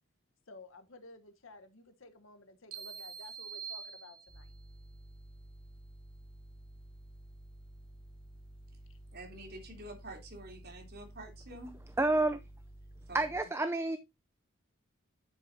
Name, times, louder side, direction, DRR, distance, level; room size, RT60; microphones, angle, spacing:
voice 1, 0.5-4.5 8.9-9.0, left 2 dB, 65° left, 1.1 m, -54 dB
sound 1, 2.7-4.6, right 7 dB, 90° right, 1.8 m, -45 dB
sound 2, 4.3-13.4, right 1 dB, 20° left, 3.5 m, -52 dB
voice 2, 9.1-11.7 13.1-13.5, right 1 dB, 50° right, 3.4 m, -48 dB
voice 3, 12.0-12.4 13.1-14.0, right 2 dB, 10° right, 0.5 m, -29 dB
10.0 x 7.8 x 2.7 m
head